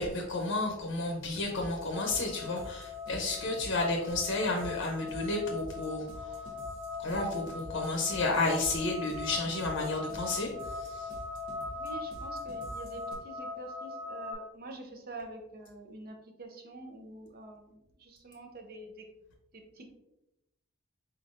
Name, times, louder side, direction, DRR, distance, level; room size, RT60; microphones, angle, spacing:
voice 1, 0.0-6.4 7.0-11.1, left 2 dB, 65° left, 1 dB, 0.7 m, -32 dB
sound 1, 1.3-13.1, equal, 90° right, 1.2 m, -48 dB
sound 2, 1.9-14.3, left 3 dB, 65° right, 1.4 m, -41 dB
voice 2, 11.7-19.1 19.5-20.0, right 2 dB, 45° right, 4 dB, 0.7 m, -47 dB
4.4 x 3.9 x 2.5 m, 0.89 s
head